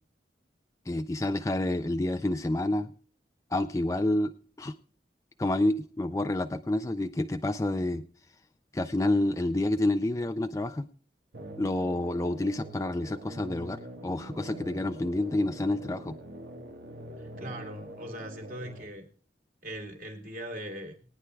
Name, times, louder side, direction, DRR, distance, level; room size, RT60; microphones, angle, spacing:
voice 1, 0.9-2.9 3.5-4.7 5.4-8.0 8.7-10.9 11.6-16.2, left 1 dB, 20° left, 8 dB, 0.4 m, -29 dB
sound 1, 11.3-18.8, right 1 dB, 70° right, 1.5 m, -44 dB
voice 2, 17.2-19.0 19.6-21.0, equal, 50° right, 1 dB, 3.0 m, -40 dB
21.5 x 9.7 x 2.3 m, 0.41 s
head